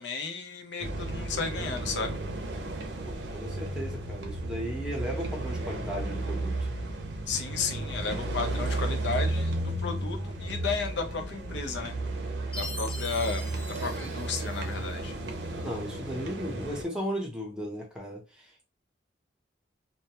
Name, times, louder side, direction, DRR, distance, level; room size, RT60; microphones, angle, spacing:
voice 1, 0.0-2.2 7.3-9.5 9.8-11.9 12.5-13.5 13.8-15.1, left 4 dB, 70° left, 0.5 m, -33 dB
sound 1, 0.8-16.8, right 2 dB, 65° right, 0.6 m, -33 dB
voice 2, 3.0-6.7 15.6-18.6, equal, 5° right, 0.7 m, -36 dB
Chime, 12.5-15.0, left 2 dB, 30° left, 0.8 m, -42 dB
2.2 x 2.0 x 2.8 m
head